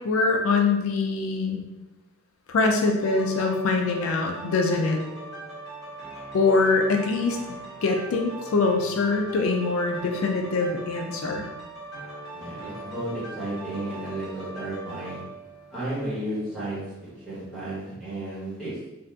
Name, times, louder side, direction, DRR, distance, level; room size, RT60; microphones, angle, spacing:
voice 1, 0.0-1.6 2.5-5.0 6.3-7.4 7.8-11.5, left 3 dB, 75° left, 3 dB, 0.4 m, -23 dB
sound 1, 3.0-16.7 17.2-17.3, right 2 dB, 50° left, 1.0 m, -41 dB
voice 2, 12.3-15.2 15.7-16.8 17.2-18.8, right 1 dB, ahead, -12 dB, 1.3 m, -33 dB
2.7 x 2.4 x 3.3 m, 1.0 s
head